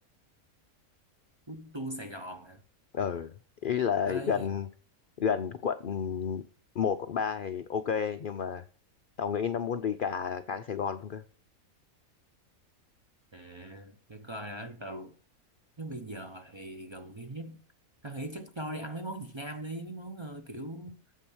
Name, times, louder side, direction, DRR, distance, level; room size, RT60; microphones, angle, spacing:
voice 1, 1.5-2.6 4.0-4.5 13.3-15.2 15.8-17.6 18.0-20.9, right 1 dB, 25° right, 0.7 m, -40 dB
voice 2, 2.9-3.3 3.6-4.7 5.2-6.4 6.8-8.6 9.2-11.2, left 7 dB, 60° left, 0.5 m, -31 dB
8.9 x 7.6 x 6.2 m
omnidirectional pair, 1.5 m